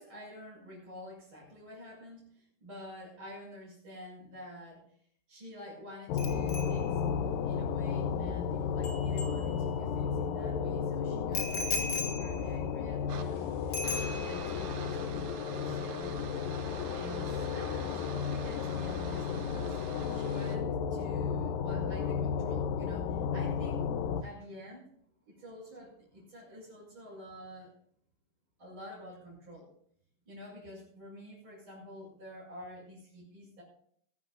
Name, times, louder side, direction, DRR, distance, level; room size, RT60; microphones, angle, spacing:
voice 1, 0.0-4.8 5.3-7.0 7.4-13.5 13.8-16.2 16.9-19.8 20.1-23.9 24.2-24.9 25.2-27.7 28.6-29.7 30.3-33.6, left 1 dB, 25° right, -8 dB, 6.7 m, -48 dB
sound 1, 6.1-24.2, left 7 dB, 80° left, 2.0 m, -33 dB
Bicycle bell, 6.2-10.0 11.3-13.4 13.7-14.6 14.9-15.2, left 4 dB, 35° left, 1.8 m, -39 dB
sound 2, 13.1-20.6, right 6 dB, 75° right, 1.7 m, -46 dB
21.0 x 12.5 x 2.6 m, 0.63 s
omnidirectional pair, 5.0 m